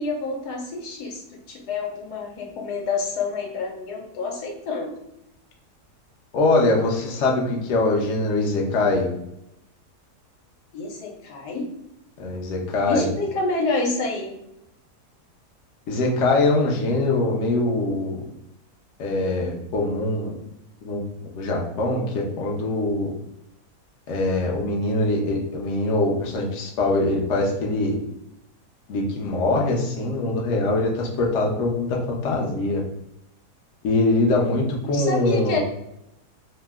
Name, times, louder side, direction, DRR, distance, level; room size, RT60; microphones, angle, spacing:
voice 1, 0.0-4.9 10.7-11.7 12.9-14.3 34.9-35.6, left 3 dB, 85° left, 1 dB, 1.2 m, -28 dB
voice 2, 6.3-9.1 12.2-13.1 15.9-18.2 19.0-20.3 20.8-21.0 21.4-23.1 24.1-28.0 28.9-32.8 33.8-35.6, left 2 dB, 65° left, -1 dB, 0.8 m, -23 dB
2.8 x 2.1 x 3.3 m, 0.82 s
omnidirectional pair, 1.7 m